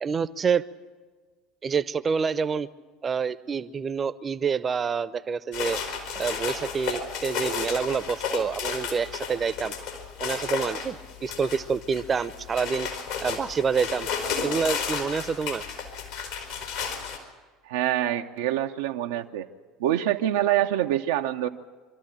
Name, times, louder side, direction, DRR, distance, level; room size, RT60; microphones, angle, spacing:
voice 1, 0.0-0.6 1.6-2.7 3.0-5.8 6.1-9.7 10.2-12.9 13.2-14.1 14.4-15.6, right 6 dB, 30° right, 16 dB, 0.8 m, -27 dB
sound 1, 5.5-17.2, left 6 dB, 70° left, 3.9 m, -33 dB
voice 2, 17.6-19.5 19.8-21.5, right 12 dB, 70° right, 4 dB, 0.7 m, -25 dB
25.0 x 13.0 x 9.0 m, 1.4 s
hypercardioid pair, 70°, 0 cm